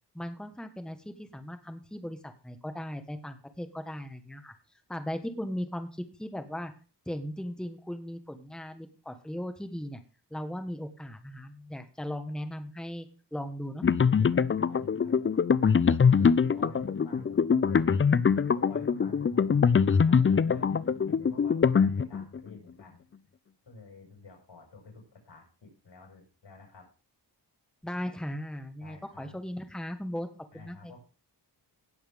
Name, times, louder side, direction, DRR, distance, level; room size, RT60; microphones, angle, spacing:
voice 1, 0.1-4.5 4.9-5.9 6.2-6.7 7.1-10.0 10.3-13.1 13.3-13.8 27.8-30.3 30.5-31.0, equal, ahead, 7 dB, 1.3 m, -37 dB
sound 1, 13.8-22.4, left 6 dB, 30° left, 0.4 m, -23 dB
voice 2, 14.6-15.3 15.7-15.8 16.2-17.9 18.6-23.0 23.7-26.9 28.8-29.4 30.5-31.0, left 2 dB, 90° left, 2 dB, 5.5 m, -50 dB
18.0 x 7.2 x 3.6 m, 0.34 s
wide cardioid pair, 115°, 42 cm